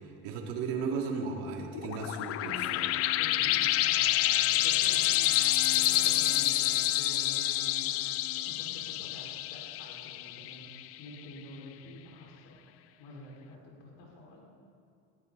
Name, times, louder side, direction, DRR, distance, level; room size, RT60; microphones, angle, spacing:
voice 1, 0.0-2.5, right 5 dB, 85° right, 0 dB, 2.8 m, -35 dB
sound 1, 1.7-10.9, left 15 dB, 50° left, 0.5 m, -28 dB
voice 2, 2.3-14.4, left 1 dB, 80° left, -2 dB, 5.2 m, -48 dB
22.0 x 14.5 x 4.1 m, 2.5 s
cardioid pair, 130°, 30 cm